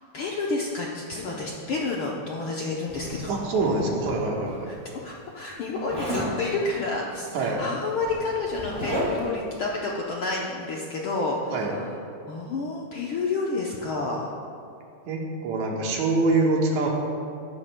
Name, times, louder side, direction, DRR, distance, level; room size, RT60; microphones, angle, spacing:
voice 1, 0.1-3.3 4.7-4.8 5.0-11.8 12.3-14.3, left 3 dB, 75° left, -3 dB, 1.2 m, -29 dB
Zipper (clothing), 2.9-4.6 5.9-6.4 7.5-7.6 7.9-9.4, equal, 10° right, 1.7 m, -33 dB
voice 2, 3.3-4.7 7.3-7.6 11.5-11.7 15.1-16.9, right 3 dB, 80° right, -1 dB, 2.7 m, -25 dB
16.5 x 11.0 x 2.2 m, 2.5 s
omnidirectional pair, 3.3 m